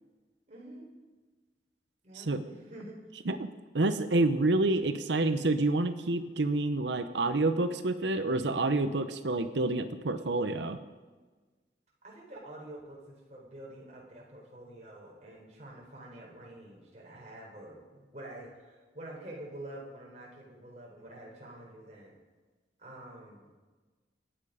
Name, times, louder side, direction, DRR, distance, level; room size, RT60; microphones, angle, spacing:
voice 1, 0.5-0.9 2.0-3.0 12.0-22.2 22.8-23.5, right 1 dB, 40° right, -3 dB, 3.9 m, -47 dB
voice 2, 3.7-10.8, right 2 dB, 85° right, 9 dB, 0.9 m, -28 dB
27.0 x 9.1 x 5.0 m, 1.3 s
head